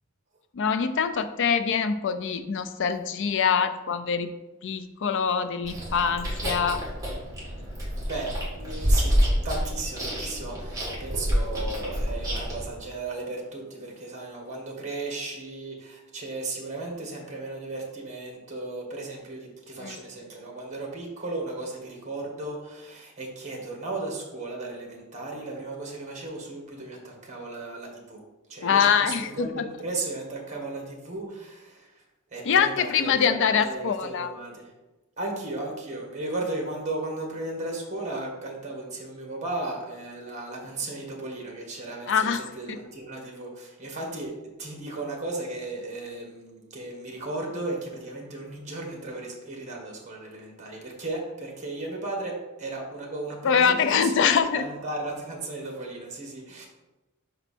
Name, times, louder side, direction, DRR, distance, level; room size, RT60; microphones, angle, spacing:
voice 1, 0.5-4.3 4.6-6.8 19.8-20.0 28.6-29.6 32.5-34.3 42.1-42.4 42.7-42.8 53.4-54.6, left 6 dB, 60° left, 10 dB, 0.4 m, -24 dB
Chewing mastication, 5.6-12.6, equal, 15° right, 2.1 m, -28 dB
voice 2, 8.1-9.2 9.4-28.2 28.5-31.9 32.3-34.7 35.2-44.3 44.6-56.7, right 2 dB, 35° right, 1 dB, 1.4 m, -35 dB
5.4 x 4.4 x 4.2 m, 1.1 s
head